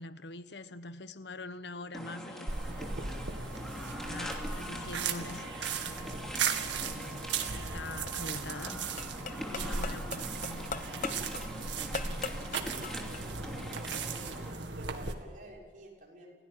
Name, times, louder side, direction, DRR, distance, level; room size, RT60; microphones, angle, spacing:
voice 1, 0.0-2.9 3.6-6.1 6.7-8.8 9.1-11.1, left 2 dB, 70° left, 1.1 m, -45 dB
sound 1, 1.9-14.5, equal, 5° left, 2.9 m, -43 dB
sound 2, 2.5-15.1, right 5 dB, 85° right, 2.2 m, -37 dB
sound 3, 7.4-13.3, left 4 dB, 45° left, 1.0 m, -42 dB
voice 2, 12.8-16.3, right 1 dB, 45° right, 6.4 m, -51 dB
28.0 x 17.5 x 9.3 m
head